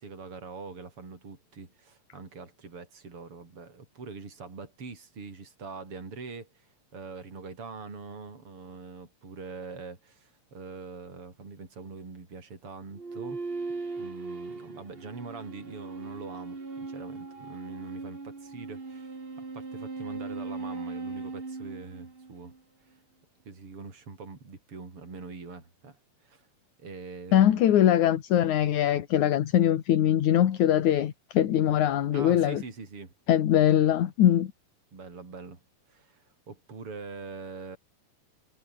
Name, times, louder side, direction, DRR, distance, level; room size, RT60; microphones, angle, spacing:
voice 1, 0.0-13.4 14.0-19.2 19.5-22.5 23.5-26.5 26.8-27.7 32.1-33.1 34.9-35.6 35.9-37.8, right 4 dB, 40° right, 6.3 m, -43 dB
sound 1, 12.9-22.6, right 3 dB, 20° right, 1.6 m, -39 dB
voice 2, 27.3-32.6 33.3-34.5, left 11 dB, 65° left, 2.8 m, -22 dB
omnidirectional pair, 4.0 m